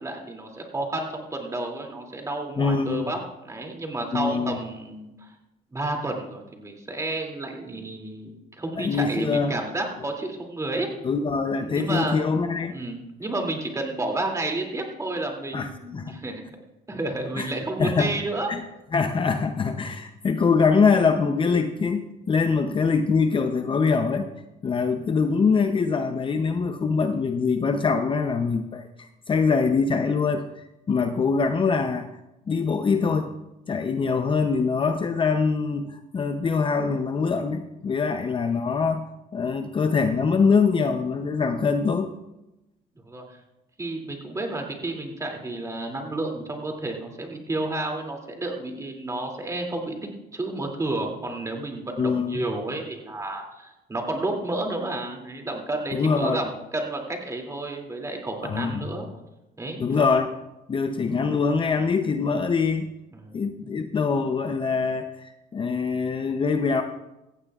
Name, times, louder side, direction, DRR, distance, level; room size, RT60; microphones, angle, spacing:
voice 1, 0.0-5.3 5.7-8.3 8.6-10.9 11.6-12.2 12.7-16.4 16.9-18.5 22.5-22.6 43.0-43.2 43.8-49.9 50.3-59.1 59.6-59.8 63.1-63.8, right 2 dB, 20° right, 2 dB, 2.7 m, -31 dB
voice 2, 2.6-3.1 4.1-4.6 8.8-9.6 11.0-12.8 15.5-16.2 17.4-17.5 17.8-18.1 18.5-18.6 18.9-24.3 24.6-32.1 32.5-33.3 33.7-39.1 39.3-42.1 52.0-52.4 55.9-56.4 58.4-58.9 59.8-60.3 60.7-62.9 63.3-66.8, left 5 dB, 30° left, 7 dB, 0.7 m, -24 dB
17.0 x 14.5 x 2.4 m, 0.97 s
cardioid pair, 110°, 17 cm